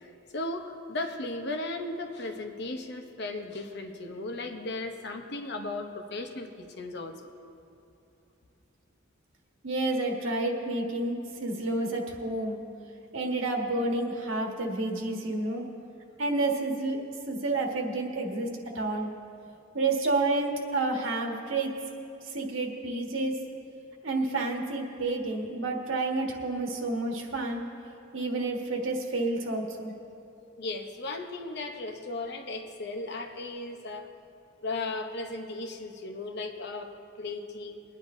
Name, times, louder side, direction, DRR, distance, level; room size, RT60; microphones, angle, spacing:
voice 1, 0.3-7.2 30.6-34.1 34.6-37.8, left 2 dB, 55° left, 5 dB, 0.9 m, -36 dB
voice 2, 9.6-12.6 13.1-15.6 16.2-17.0 17.3-18.5 18.7-19.1 19.7-21.8 22.3-23.4 24.0-27.6 28.1-29.9, right 2 dB, 80° right, 1 dB, 1.5 m, -29 dB
23.0 x 9.9 x 2.7 m, 2.7 s
head